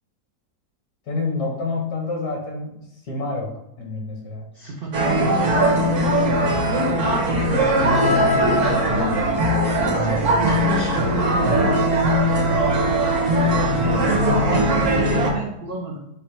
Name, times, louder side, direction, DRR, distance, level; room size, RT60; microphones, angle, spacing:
voice 1, 1.1-3.5 3.8-4.5 8.1-9.1 11.3-11.7 12.4-12.7 13.4-13.7 14.2-14.4, left 3 dB, 65° left, -1 dB, 1.7 m, -29 dB
voice 2, 4.5-5.4 7.5-9.0 9.6-11.6 13.5-14.2 14.4-16.0, right 2 dB, 70° right, -1 dB, 0.5 m, -31 dB
sound 1, 4.9-15.3, right 1 dB, 55° right, 1.2 m, -19 dB
5.5 x 2.0 x 4.5 m, 0.87 s
omnidirectional pair, 1.8 m